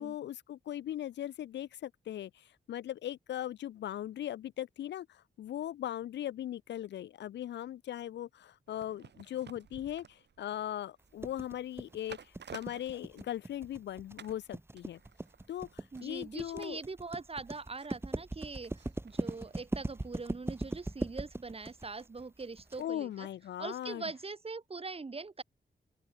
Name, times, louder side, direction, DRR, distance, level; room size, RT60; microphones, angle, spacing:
voice 1, 0.0-15.0 15.5-16.8 22.8-24.0, left 12 dB, 80° left, 0.4 m, -39 dB
sound 1, 8.7-13.8 14.2-14.5 14.8-23.9 24.2-24.3, right 7 dB, 75° right, 4.7 m, -56 dB
sound 2, 11.2-22.8, right 2 dB, 15° right, 1.0 m, -39 dB
voice 2, 15.9-23.3 23.6-25.4, right 4 dB, 35° right, 1.8 m, -42 dB
open air
cardioid pair, 75°, 18 cm